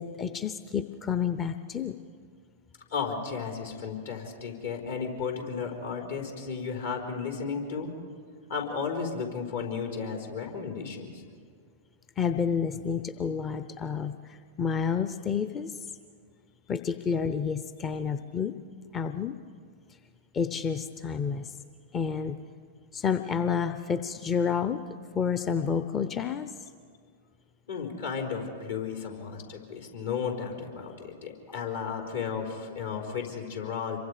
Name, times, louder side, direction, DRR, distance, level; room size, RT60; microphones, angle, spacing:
voice 1, 0.0-2.0 12.2-15.9 16.7-18.5 18.9-19.4 20.3-21.6 21.9-22.4 22.9-24.8 25.1-26.5, left 6 dB, 25° left, 10 dB, 0.7 m, -30 dB
voice 2, 2.9-7.9 8.5-11.1 27.7-34.0, left 6 dB, 70° left, 1 dB, 4.5 m, -34 dB
27.0 x 23.5 x 5.0 m, 2.1 s
figure-of-eight pair, 100°, 0 cm